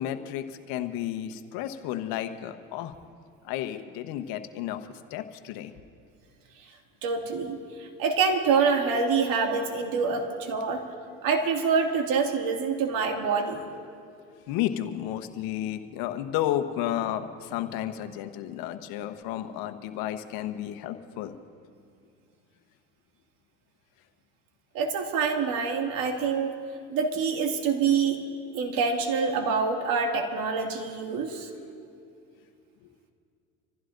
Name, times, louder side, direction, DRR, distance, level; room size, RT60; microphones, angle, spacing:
voice 1, 0.0-2.9 3.4-5.7 14.5-21.3, left 12 dB, 65° left, 8 dB, 1.2 m, -32 dB
voice 2, 7.0-10.8 11.2-13.6 24.7-26.6 26.9-28.2 28.5-31.5, right 5 dB, 65° right, 2 dB, 2.4 m, -26 dB
26.5 x 15.5 x 2.6 m, 2.4 s
hypercardioid pair, 80°, 37 cm